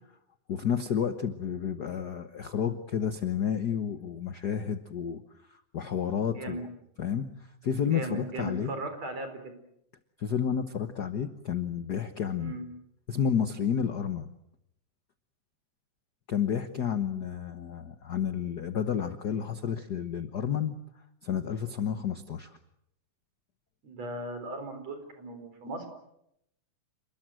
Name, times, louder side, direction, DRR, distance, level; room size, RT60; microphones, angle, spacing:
voice 1, 0.5-5.2 5.7-6.7 7.0-7.3 7.6-8.7 10.2-12.6 13.1-14.3 16.3-20.7 21.2-22.5, left 8 dB, 75° left, 9 dB, 0.9 m, -30 dB
voice 2, 6.3-6.6 7.9-9.6 12.3-12.7 23.8-25.9, right 2 dB, 55° right, 7 dB, 5.5 m, -37 dB
28.5 x 21.0 x 7.7 m, 0.80 s
omnidirectional pair, 3.5 m